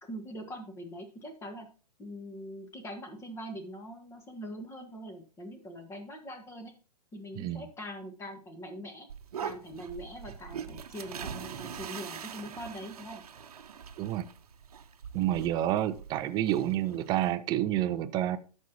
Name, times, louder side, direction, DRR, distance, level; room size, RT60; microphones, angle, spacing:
voice 1, 0.0-1.7 2.0-6.7 7.1-9.1 9.4-13.2, equal, 15° left, 1.5 m, -43 dB
sound 1, 9.1-17.3, right 7 dB, 65° right, 1.0 m, -43 dB
voice 2, 15.1-18.4, right 12 dB, 20° right, 0.6 m, -29 dB
13.0 x 5.4 x 2.9 m
figure-of-eight pair, 125°, 21 cm